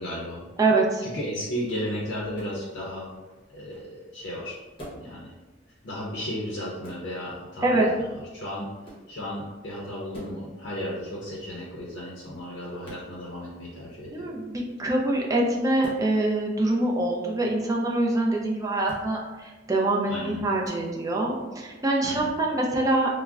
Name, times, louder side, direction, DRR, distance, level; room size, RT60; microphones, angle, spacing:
voice 1, 0.0-0.4 1.0-3.1 3.5-4.6 4.9-5.3 5.8-8.1 8.3-8.7 9.1-14.3 20.1-20.4 22.0-22.3, equal, 65° left, -4 dB, 0.5 m, -34 dB
voice 2, 0.6-1.0 7.6-7.9 14.1-23.2, right 2 dB, 20° right, -2 dB, 0.4 m, -25 dB
sound 1, 2.3-2.6 4.8-5.1 6.8-7.1 8.8-9.1 10.1-10.4 12.8-13.1 15.8-16.1 18.8-19.1 20.6-20.8, right 1 dB, 30° left, 0.9 m, -43 dB
3.4 x 2.0 x 2.3 m, 1.2 s
head